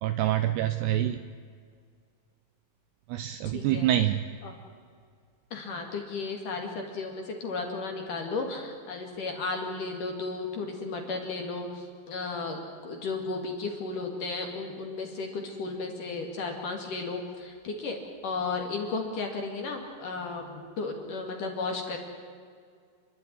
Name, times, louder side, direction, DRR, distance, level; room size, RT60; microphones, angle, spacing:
voice 1, 0.0-1.2 3.1-4.2, right 12 dB, 85° right, 10 dB, 2.4 m, -26 dB
voice 2, 3.5-3.9 4.4-4.5 5.5-22.0, left 3 dB, 50° left, 3 dB, 3.1 m, -34 dB
29.5 x 12.0 x 9.9 m, 2.1 s
omnidirectional pair, 5.6 m